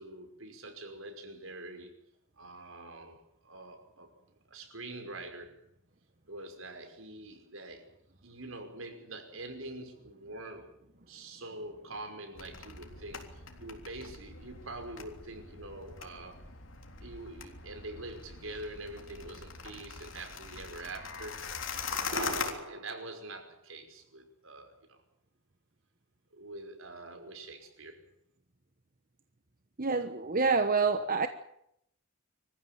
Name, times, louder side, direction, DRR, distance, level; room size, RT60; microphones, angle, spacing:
voice 1, 0.0-2.0 2.4-4.1 4.5-5.6 6.3-7.9 8.2-10.7 11.1-16.4 17.0-21.4 21.9-25.0 26.3-28.0, right 2 dB, 80° right, 5.5 m, -44 dB
sound 1, 12.4-22.5, left 5 dB, 70° left, 3.6 m, -41 dB
voice 2, 29.8-31.3, right 4 dB, 45° right, 1.2 m, -27 dB
25.5 x 15.0 x 9.5 m
head